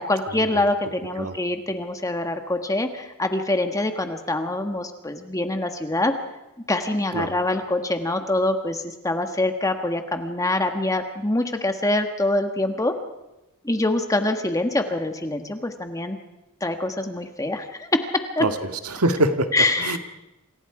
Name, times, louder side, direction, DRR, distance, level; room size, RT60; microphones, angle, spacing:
voice 1, 0.0-6.1 6.7-12.9 13.6-16.2 16.6-18.5 19.5-20.0, left 2 dB, 15° left, 6 dB, 1.4 m, -25 dB
voice 2, 18.8-19.5 19.8-20.0, right 1 dB, 85° right, 7 dB, 1.8 m, -23 dB
28.0 x 27.5 x 4.9 m, 0.99 s
head